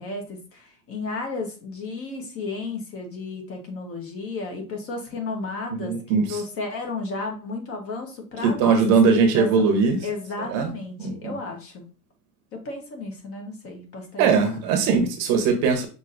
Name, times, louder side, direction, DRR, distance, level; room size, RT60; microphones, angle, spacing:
voice 1, 0.0-8.8 9.0-9.5 10.0-11.8 12.5-14.6, left 3 dB, 30° left, 3 dB, 1.1 m, -33 dB
voice 2, 5.8-6.4 8.4-10.0 10.5-10.7 11.0-11.3 14.2-15.9, right 5 dB, 45° right, 6 dB, 0.9 m, -20 dB
6.0 x 2.8 x 2.5 m, 0.35 s
supercardioid pair, 135°, 44 cm